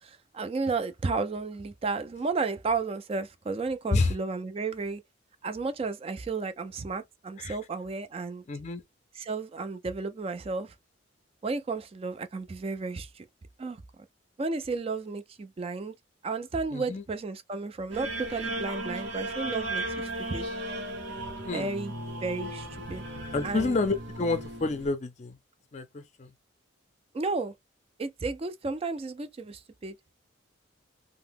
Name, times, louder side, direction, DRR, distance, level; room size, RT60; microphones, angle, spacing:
voice 1, 0.0-5.0 5.4-8.4 9.2-10.7 11.4-13.2 13.6-13.8 14.4-15.9 16.2-20.5 21.5-21.9 22.2-23.0 23.4-23.8 27.1-27.5 28.0-30.0, right 4 dB, 30° right, 0.3 m, -33 dB
voice 2, 8.5-8.8 16.7-17.0 21.5-21.7 23.3-25.4 25.7-26.3, left 3 dB, 35° left, 0.4 m, -29 dB
sound 1, 17.9-24.9, right 1 dB, 60° right, 0.9 m, -36 dB
2.8 x 2.0 x 3.4 m
head